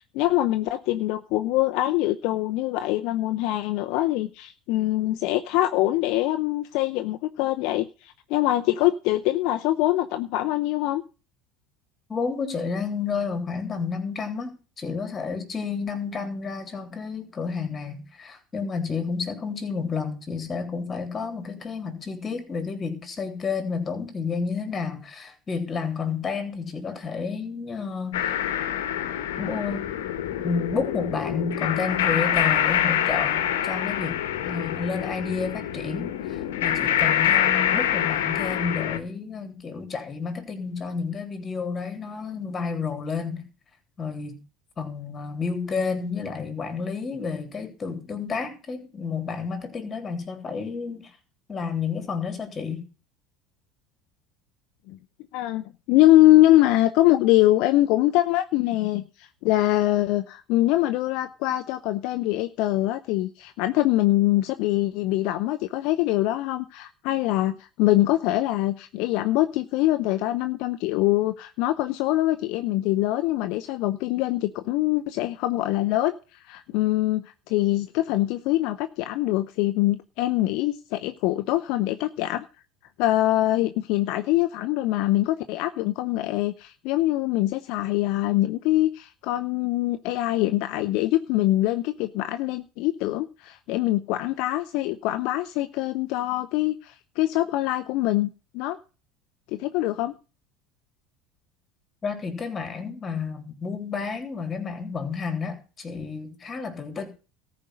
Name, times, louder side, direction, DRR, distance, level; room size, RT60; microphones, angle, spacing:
voice 1, 0.1-11.0 54.9-55.0 55.3-82.4 83.0-98.3 98.5-98.8 99.5-100.1, left 16 dB, 65° left, 0.7 m, -23 dB
voice 2, 12.1-28.3 29.4-29.9 30.4-43.5 44.0-44.4 44.8-51.1 51.5-52.8 102.0-107.1, left 5 dB, 30° left, 3.4 m, -31 dB
sound 1, 28.1-39.0, left 10 dB, 90° left, 1.2 m, -25 dB
14.0 x 5.3 x 7.9 m
supercardioid pair, 95°, 0 cm